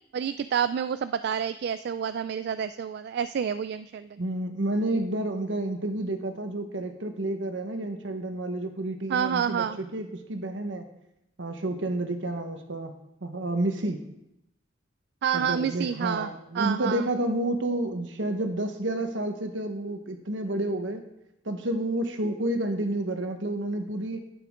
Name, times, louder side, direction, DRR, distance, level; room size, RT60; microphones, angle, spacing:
voice 1, 0.1-4.2 9.1-9.8 15.2-17.1, right 8 dB, 60° right, 12 dB, 0.3 m, -29 dB
voice 2, 4.2-10.9 11.4-14.0 15.3-21.0 21.4-24.2, right 1 dB, 75° right, 6 dB, 1.2 m, -30 dB
11.5 x 9.1 x 3.7 m, 0.85 s
head